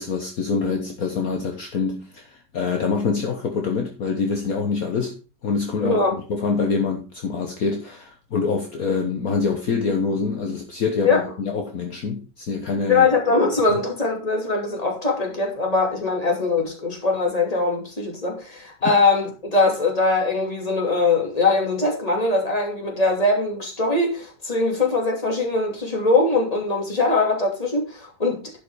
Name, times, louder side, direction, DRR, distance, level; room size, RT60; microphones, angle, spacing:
voice 1, 0.0-13.1 13.7-13.8, left 5 dB, 60° left, 1.6 m, -25 dB
voice 2, 5.8-6.1 11.0-11.2 12.9-28.6, left 3 dB, 20° left, 2.7 m, -21 dB
11.0 x 5.8 x 4.9 m
omnidirectional pair, 1.9 m